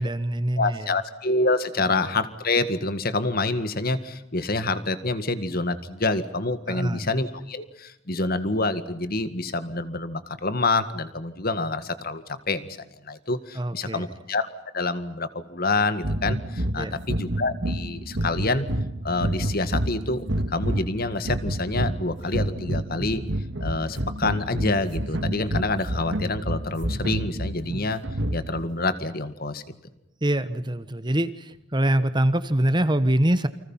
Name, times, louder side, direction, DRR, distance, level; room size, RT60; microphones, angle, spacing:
voice 1, 0.0-0.9 6.7-7.1 13.6-14.1 16.8-16.9 30.2-33.5, right 1 dB, 20° right, 12 dB, 1.1 m, -24 dB
voice 2, 0.6-14.5 14.7-18.7 19.0-23.2 23.6-28.0 28.3-29.6, left 2 dB, 45° left, 11 dB, 1.8 m, -27 dB
sound 1, 16.0-28.7, right 1 dB, 60° right, 1.8 m, -29 dB
29.5 x 25.0 x 5.7 m, 0.87 s
head